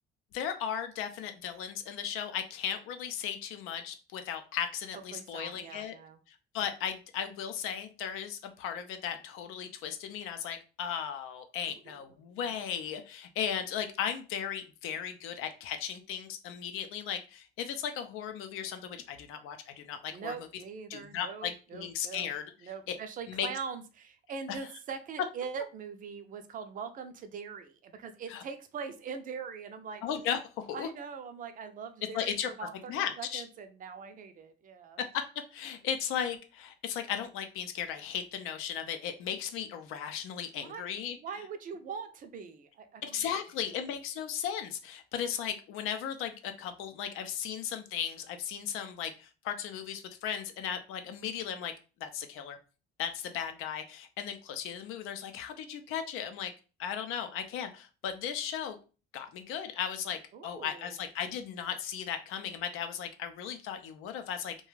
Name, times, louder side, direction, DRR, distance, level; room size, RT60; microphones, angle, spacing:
voice 1, 0.3-5.9 6.3-20.5 20.9-22.4 22.9-23.0 23.3-23.5 28.3-28.4 30.0-30.9 32.1-32.5 32.9-33.4 35.1-35.2 35.5-41.2 43.0-51.7 52.0-52.6 53.0-56.5 56.8-58.8 59.1-64.6, left 8 dB, 75° left, 8 dB, 0.5 m, -36 dB
voice 2, 5.1-6.2 11.7-11.9 20.1-22.3 22.6-30.0 30.7-35.0 40.5-40.8 41.2-43.2 60.3-61.0, right 6 dB, 40° right, 8 dB, 0.5 m, -42 dB
2.4 x 2.2 x 3.1 m, 0.34 s
cardioid pair, 115°, 21 cm